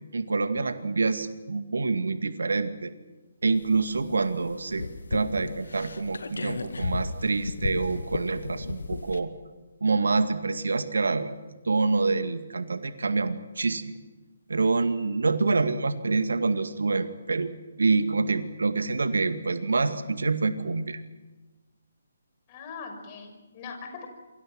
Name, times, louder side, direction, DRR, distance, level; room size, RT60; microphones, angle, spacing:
voice 1, 0.1-2.9 3.4-4.9 5.1-9.3 9.8-11.3 11.7-14.0 14.5-17.5 17.8-21.0, right 3 dB, 70° right, 9 dB, 2.1 m, -26 dB
sound 1, 3.6-9.2, left 3 dB, 65° left, 2.0 m, -34 dB
voice 2, 22.5-24.1, left 5 dB, 30° left, 4 dB, 5.8 m, -41 dB
28.0 x 24.5 x 6.1 m, 1.2 s
figure-of-eight pair, 140°, 0 cm